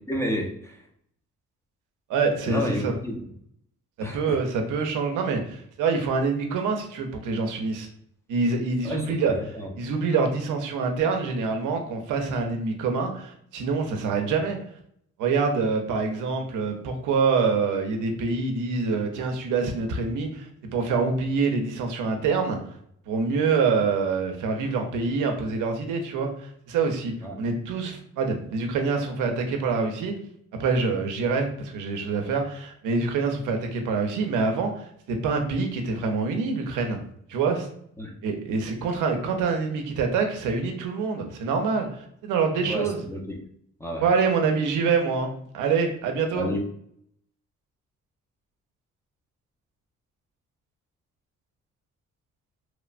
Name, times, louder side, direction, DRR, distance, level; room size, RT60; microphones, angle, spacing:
voice 1, 0.1-0.8 2.4-3.2 4.0-4.4 8.8-9.7 27.2-27.4 38.0-38.2 42.7-43.4 43.8-44.0 46.3-46.6, equal, 10° left, 1 dB, 0.5 m, -31 dB
voice 2, 2.1-2.9 4.1-7.9 8.3-9.3 9.8-14.6 15.2-22.6 23.1-30.1 30.6-37.0 37.3-37.7 38.2-43.0 44.0-46.5, right 4 dB, 80° right, 4 dB, 0.6 m, -26 dB
3.0 x 2.1 x 2.4 m, 0.67 s
cardioid pair, 90°, 30 cm